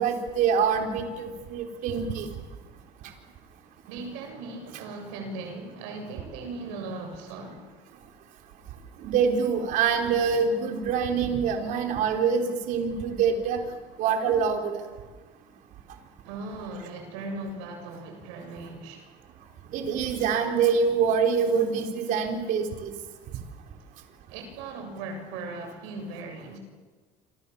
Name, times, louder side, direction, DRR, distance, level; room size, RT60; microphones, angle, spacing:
voice 1, 0.0-2.3 9.0-13.6 14.0-14.8 19.7-22.9, right 6 dB, 65° right, 3 dB, 4.5 m, -25 dB
voice 2, 3.9-7.7 16.2-19.1 23.8-23.9 24.3-26.6, right 3 dB, 90° right, 4 dB, 7.6 m, -38 dB
28.0 x 26.5 x 7.3 m, 1.4 s
cardioid pair, 120°, 14 cm